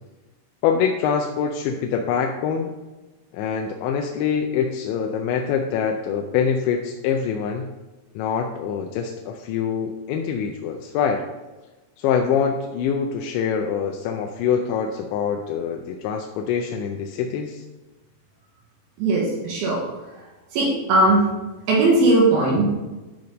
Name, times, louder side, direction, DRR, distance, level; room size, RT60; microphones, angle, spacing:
voice 1, 0.6-2.7 3.3-7.7 8.2-11.2 12.0-17.6, left 7 dB, 80° left, 3 dB, 2.7 m, -24 dB
voice 2, 19.0-19.9 20.5-21.3 21.7-22.9, right 2 dB, 65° right, -2 dB, 2.7 m, -19 dB
12.5 x 4.4 x 5.2 m, 1.1 s
omnidirectional pair, 5.5 m